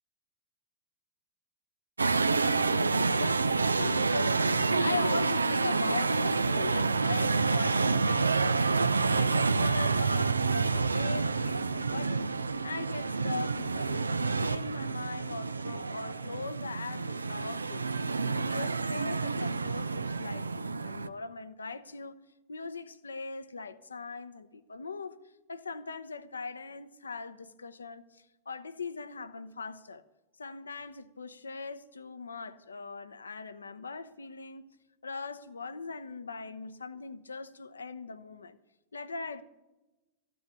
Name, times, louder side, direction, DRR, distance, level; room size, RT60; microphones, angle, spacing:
sound 1, 2.0-21.1, right 4 dB, 80° right, 0.5 m, -28 dB
voice 1, 3.0-8.4 9.1-12.3 12.6-17.9 18.2-22.2 22.5-25.2 25.5-30.0 30.4-34.6 35.0-38.6 38.9-39.4, left 4 dB, 75° left, 0.8 m, -40 dB
14.5 x 9.3 x 8.4 m
figure-of-eight pair, 90°, 0 cm